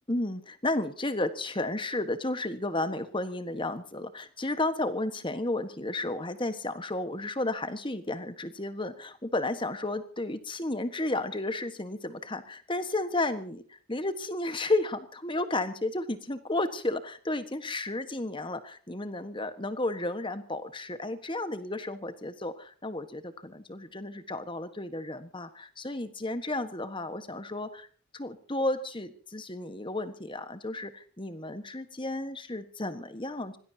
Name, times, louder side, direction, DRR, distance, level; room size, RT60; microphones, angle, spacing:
voice 1, 0.1-27.9 28.1-33.6, left 2 dB, 20° left, 10 dB, 1.4 m, -33 dB
25.5 x 19.5 x 2.9 m, 0.43 s
head